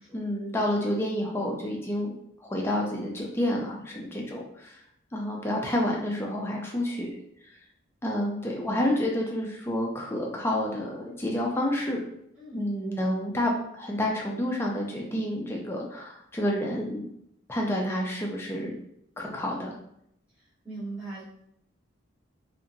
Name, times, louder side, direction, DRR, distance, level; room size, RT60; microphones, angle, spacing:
voice 1, 0.1-2.1 2.4-4.7 5.1-7.2 8.0-12.0 12.5-17.0 17.5-18.8 19.2-19.7, left 1 dB, 10° left, -1 dB, 0.4 m, -29 dB
voice 2, 20.6-21.2, right 2 dB, 5° right, -11 dB, 0.8 m, -39 dB
2.8 x 2.5 x 2.5 m, 0.74 s
head